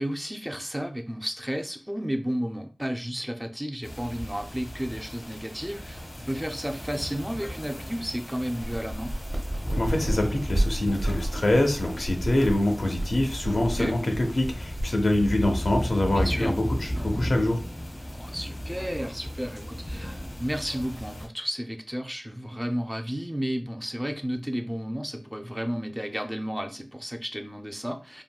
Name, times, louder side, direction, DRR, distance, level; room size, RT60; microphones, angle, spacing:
voice 1, 0.0-9.1 13.8-13.9 16.1-16.6 18.1-28.2, equal, 5° right, 5 dB, 0.4 m, -32 dB
sound 1, 3.8-21.3, equal, 50° left, 1.0 m, -35 dB
sound 2, 8.6-15.7, right 1 dB, 45° right, 0.6 m, -32 dB
voice 2, 9.7-17.6, left 1 dB, 80° left, 3 dB, 0.6 m, -25 dB
3.6 x 2.2 x 2.3 m, 0.35 s
wide cardioid pair, 60°, 0 cm